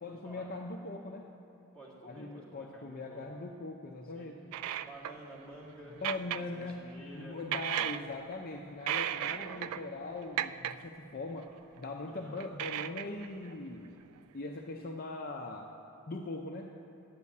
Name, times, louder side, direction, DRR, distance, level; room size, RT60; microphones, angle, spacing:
voice 1, 0.0-1.3 2.0-4.4 5.9-6.8 7.1-14.0 14.3-15.7 16.1-16.7, left 2 dB, 40° left, 1 dB, 0.5 m, -41 dB
voice 2, 1.7-3.2 4.0-4.3 4.8-7.4 9.2-9.7 12.1-12.4, right 1 dB, 5° left, -7 dB, 2.2 m, -51 dB
Sail boat Boom squeaking (contact mic), 4.5-5.3 6.0-6.7 7.4-8.4 8.8-9.9 10.2-10.8 11.8-11.9 12.4-13.5, right 11 dB, 80° right, 0.3 m, -35 dB
9.5 x 6.9 x 8.4 m, 2.7 s
head